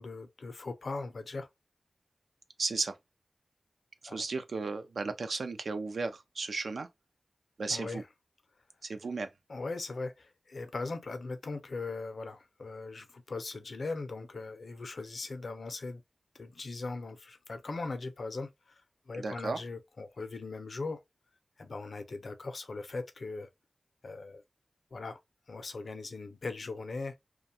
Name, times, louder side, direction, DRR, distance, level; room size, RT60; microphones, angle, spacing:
voice 1, 0.0-1.5 4.1-4.2 7.7-8.1 9.5-16.0 16.3-21.0 21.6-23.5 24.0-24.4 24.9-25.2 25.5-27.2, left 3 dB, 70° left, 0.5 m, -39 dB
voice 2, 2.6-3.0 4.0-6.9 7.6-8.0 8.8-9.3 19.1-19.6, right 3 dB, 80° right, 0.4 m, -34 dB
2.4 x 2.2 x 2.7 m
wide cardioid pair, 80°, 0 cm